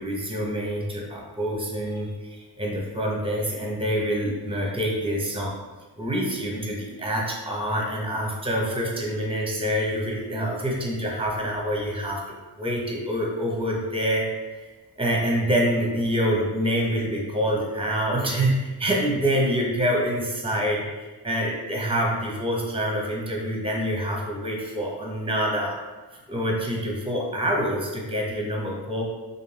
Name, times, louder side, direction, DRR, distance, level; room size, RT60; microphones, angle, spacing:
voice 1, 0.0-5.5 6.0-14.3 14.5-14.7 15.0-25.8 26.3-29.0, equal, 10° right, -1 dB, 0.7 m, -26 dB
2.5 x 2.0 x 3.2 m, 1.2 s
supercardioid pair, 55°, 44 cm